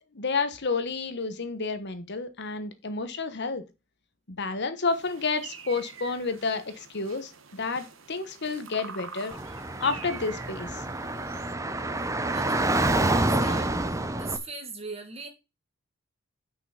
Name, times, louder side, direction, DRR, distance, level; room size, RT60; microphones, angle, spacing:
voice 1, 0.1-3.6 4.3-9.4 9.8-10.8, left 4 dB, 55° left, 1.2 m, -30 dB
sound 1, 4.9-11.5, right 6 dB, 65° right, 1.1 m, -46 dB
Car / Traffic noise roadway noise, 9.3-14.4, right 2 dB, 15° right, 0.7 m, -27 dB
voice 2, 11.9-13.8 14.1-15.3, right 4 dB, 30° right, 1.9 m, -39 dB
6.1 x 5.7 x 7.0 m
head